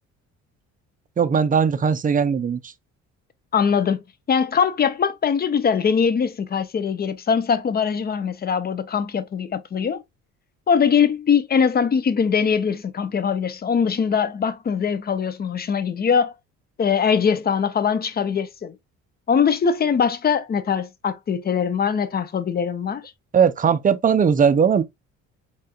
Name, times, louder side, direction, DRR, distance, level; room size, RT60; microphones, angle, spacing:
voice 1, 1.2-2.7 23.3-24.8, right 7 dB, 30° right, 0.5 m, -19 dB
voice 2, 3.5-10.0 10.7-16.3 16.8-18.8 19.3-23.1, left 6 dB, 30° left, 0.5 m, -22 dB
4.1 x 3.7 x 2.3 m
cardioid pair, 100°, 30 cm